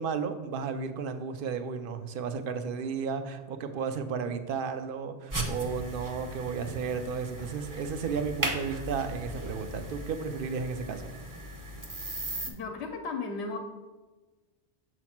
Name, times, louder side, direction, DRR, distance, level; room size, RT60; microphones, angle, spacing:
voice 1, 0.0-11.1, right 6 dB, 60° right, 9 dB, 0.7 m, -33 dB
sound 1, 5.3-12.5, right 1 dB, 25° right, 0.5 m, -37 dB
voice 2, 12.5-13.6, left 4 dB, 85° left, 4 dB, 0.9 m, -35 dB
6.9 x 3.0 x 5.8 m, 1.2 s
omnidirectional pair, 1.1 m